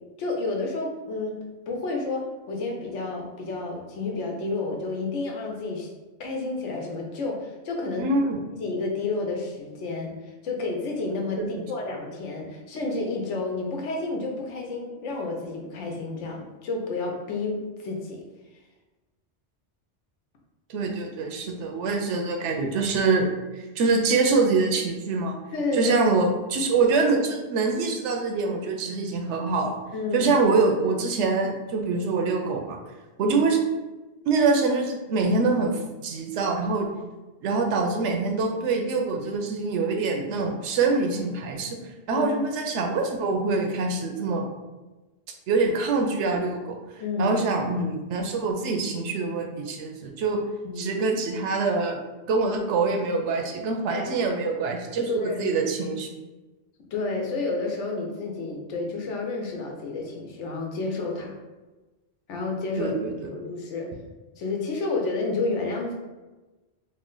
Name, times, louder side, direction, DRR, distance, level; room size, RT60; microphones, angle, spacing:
voice 1, 0.2-1.4 1.7-5.9 6.2-8.1 8.5-10.1 10.4-11.4 11.7-18.2 25.5-25.9 29.9-30.3 42.1-42.3 47.0-47.3 50.6-50.9 53.9-54.4 55.2-55.5 56.9-61.3 62.3-63.9 64.4-65.9, left 3 dB, 85° left, 0 dB, 1.0 m, -30 dB
voice 2, 8.0-8.4 11.4-11.6 20.7-25.4 25.7-29.7 30.1-32.8 33.2-33.6 34.3-36.9 37.4-41.8 42.1-44.5 45.5-46.8 47.2-50.4 50.8-52.0 52.3-56.1 62.8-63.3, right 3 dB, 80° right, 3 dB, 0.9 m, -25 dB
3.1 x 2.2 x 3.7 m, 1.2 s
omnidirectional pair, 1.2 m